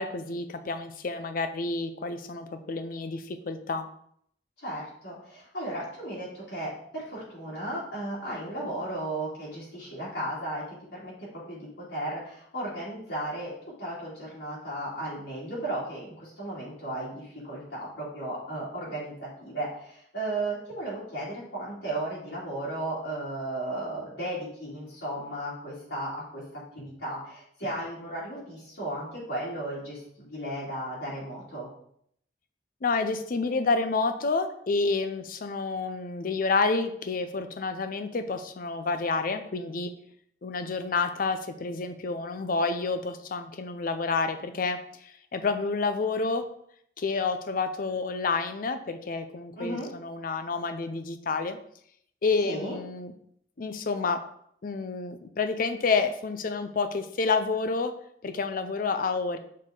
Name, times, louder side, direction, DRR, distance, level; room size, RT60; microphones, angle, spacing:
voice 1, 0.0-3.9 32.8-39.9 40.4-46.4 47.0-51.6 52.2-53.1 53.6-54.2 54.6-57.9 58.2-59.4, left 4 dB, 55° left, 9 dB, 0.5 m, -29 dB
voice 2, 4.6-10.6 10.9-13.5 13.8-31.7 49.6-49.9 52.4-52.8, right 1 dB, 75° left, -7 dB, 2.5 m, -35 dB
6.3 x 4.2 x 3.8 m, 0.68 s
head